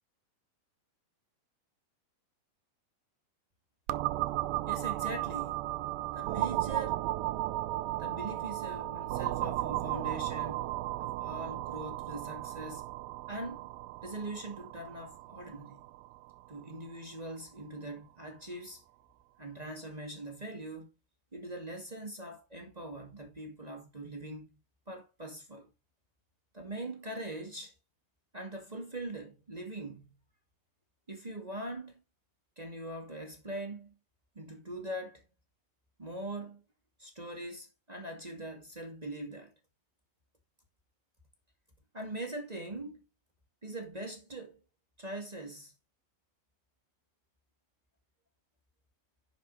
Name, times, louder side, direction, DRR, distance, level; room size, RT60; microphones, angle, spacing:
sound 1, 3.9-17.4, right 17 dB, 80° right, 2.3 m, -35 dB
voice 1, 4.7-5.7 6.1-7.0 8.0-12.9 13.3-13.7 14.0-15.9 16.5-18.8 19.4-20.9 21.3-24.6 24.9-25.7 26.5-27.7 28.3-30.1 31.1-32.0 32.5-34.0 34.3-35.2 36.0-36.6 37.0-39.5 41.9-43.0 43.6-44.6 45.0-45.7, right 1 dB, 30° right, 0.7 m, -42 dB
11.0 x 6.0 x 4.1 m
omnidirectional pair, 4.4 m